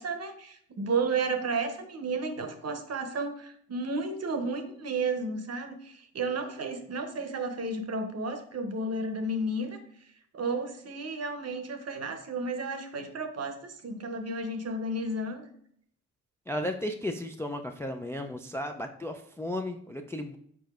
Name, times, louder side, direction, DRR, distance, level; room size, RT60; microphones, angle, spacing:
voice 1, 0.0-9.8 10.3-15.5, right 3 dB, 45° right, 7 dB, 0.8 m, -32 dB
voice 2, 16.5-20.4, left 1 dB, 10° left, 4 dB, 0.3 m, -34 dB
4.9 x 4.1 x 2.4 m, 0.66 s
supercardioid pair, 50°, 36 cm